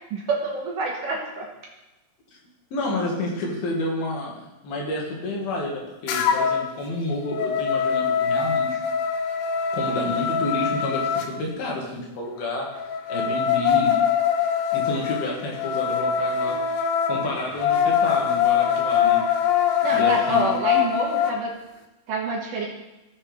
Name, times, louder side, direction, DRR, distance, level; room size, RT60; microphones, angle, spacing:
voice 1, 0.1-1.5 19.8-21.5 22.1-22.7, right 3 dB, 65° right, -2 dB, 2.4 m, -27 dB
voice 2, 2.7-8.8 9.8-12.7 13.1-14.0 14.7-16.6 17.1-19.2 19.9-20.5, left 1 dB, 65° left, -2 dB, 3.6 m, -30 dB
sound 1, 6.1-6.7 7.1-11.3 12.8-21.4, left 8 dB, 85° left, 2.8 m, -23 dB
16.5 x 6.5 x 3.5 m, 1.0 s
omnidirectional pair, 4.7 m